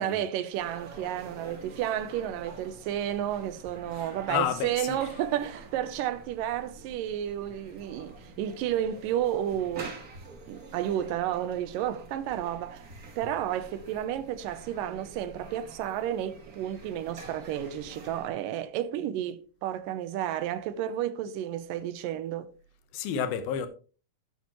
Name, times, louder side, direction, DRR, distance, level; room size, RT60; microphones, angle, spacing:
voice 1, 0.0-9.9 10.5-12.9 13.2-22.5, right 11 dB, 80° right, 2.3 m, -32 dB
sound 1, 0.5-18.3, right 3 dB, 40° right, 1.3 m, -47 dB
voice 2, 3.9-5.1 22.9-23.7, left 8 dB, 85° left, 3.0 m, -31 dB
12.5 x 8.3 x 3.0 m
omnidirectional pair, 4.2 m